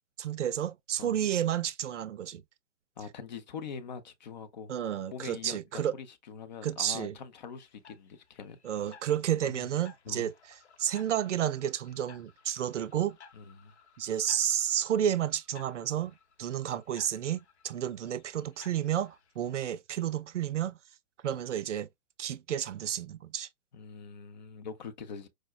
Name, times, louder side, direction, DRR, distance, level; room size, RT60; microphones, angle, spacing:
voice 1, 0.2-2.4 4.7-5.9 6.6-7.1 8.6-10.3 10.8-13.2 14.0-20.8 21.2-21.9 22.2-23.5, right 10 dB, 75° right, 0.5 m, -31 dB
voice 2, 3.0-4.7 5.1-8.6 9.4-9.7 10.1-10.3 13.3-13.7 23.7-25.3, left 6 dB, 40° left, 0.5 m, -43 dB
sound 1, 7.6-19.5, left 6 dB, 65° left, 0.8 m, -58 dB
4.8 x 2.1 x 2.2 m
figure-of-eight pair, 125°, 36 cm